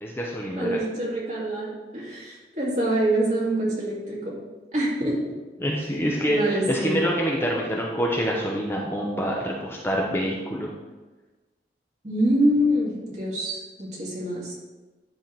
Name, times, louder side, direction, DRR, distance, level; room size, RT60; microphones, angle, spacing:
voice 1, 0.0-0.8 5.6-10.7, equal, 15° left, -2 dB, 0.8 m, -26 dB
voice 2, 0.6-4.4 4.7-5.2 6.3-7.0 12.0-14.5, right 1 dB, 40° right, -5 dB, 2.3 m, -25 dB
10.0 x 3.7 x 5.9 m, 1.2 s
head